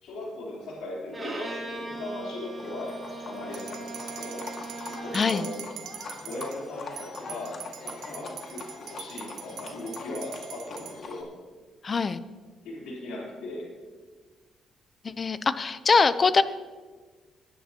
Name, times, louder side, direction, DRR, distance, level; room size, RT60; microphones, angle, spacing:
voice 1, 0.0-3.0 3.3-4.5 4.8-5.6 6.3-11.3 12.6-13.7, left 2 dB, 90° left, -4 dB, 3.5 m, -38 dB
Bowed string instrument, 1.1-5.6, right 2 dB, 20° right, 2.8 m, -39 dB
Livestock farm animals working animals, 2.6-11.2, left 4 dB, 55° left, 1.9 m, -43 dB
sound 1, 3.5-6.6 7.0-11.0, right 9 dB, 80° right, 0.9 m, -43 dB
voice 2, 5.1-5.5 11.8-12.2 15.2-16.4, left 4 dB, 35° left, 14 dB, 0.6 m, -22 dB
20.0 x 10.0 x 2.9 m, 1.4 s
cardioid pair, 90°, 0 cm